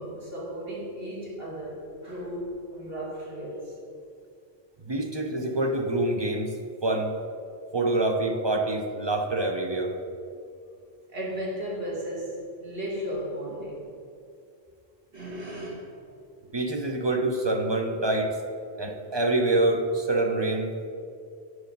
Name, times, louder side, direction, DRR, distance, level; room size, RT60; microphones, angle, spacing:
voice 1, 0.0-3.8 11.1-13.9 15.1-15.9 16.4-16.5, equal, 65° right, -4 dB, 2.2 m, -35 dB
voice 2, 4.9-6.5 6.8-7.1 7.7-10.0 16.5-18.4 18.8-20.7, right 2 dB, 35° right, 4 dB, 0.5 m, -26 dB
7.8 x 6.4 x 5.2 m, 2.4 s
omnidirectional pair, 1.1 m